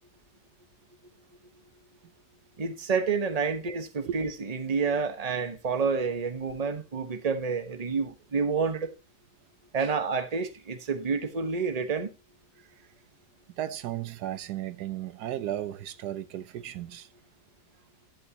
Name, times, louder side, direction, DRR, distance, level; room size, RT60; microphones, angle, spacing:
voice 1, 2.6-8.9 9.7-12.1, right 5 dB, 25° right, 1.1 m, -29 dB
voice 2, 13.6-17.1, right 12 dB, 80° right, 1.2 m, -35 dB
12.0 x 8.2 x 2.8 m
omnidirectional pair, 1.7 m